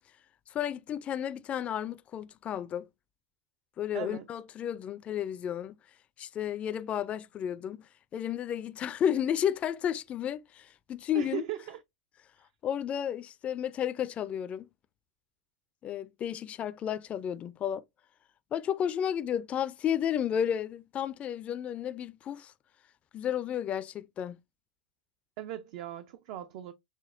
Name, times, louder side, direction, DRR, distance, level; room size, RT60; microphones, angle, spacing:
voice 1, 0.5-2.9 3.8-5.8 6.2-11.4 12.6-14.7 15.8-17.8 18.5-22.5 23.1-24.4, left 9 dB, 25° left, 0.4 m, -32 dB
voice 2, 3.9-4.3 11.1-11.8 25.4-26.7, right 12 dB, 55° right, 0.4 m, -38 dB
6.0 x 2.3 x 2.4 m
hypercardioid pair, 125°, 5 cm